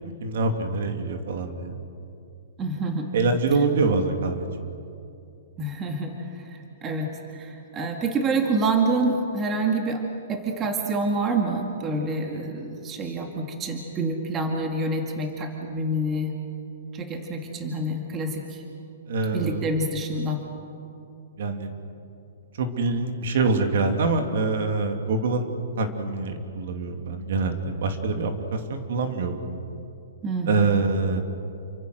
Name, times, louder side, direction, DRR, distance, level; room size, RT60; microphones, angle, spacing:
voice 1, 0.0-1.8 3.1-4.5 19.1-19.6 21.4-21.7 22.6-25.5 25.8-29.4 30.5-31.2, right 3 dB, 60° right, 5 dB, 2.7 m, -25 dB
voice 2, 2.6-3.1 5.6-6.1 6.8-16.3 16.9-18.6 19.3-20.4 30.2-30.7, right 2 dB, 15° right, 3 dB, 2.1 m, -27 dB
28.5 x 25.0 x 6.5 m, 2.5 s
hypercardioid pair, 165°, 0 cm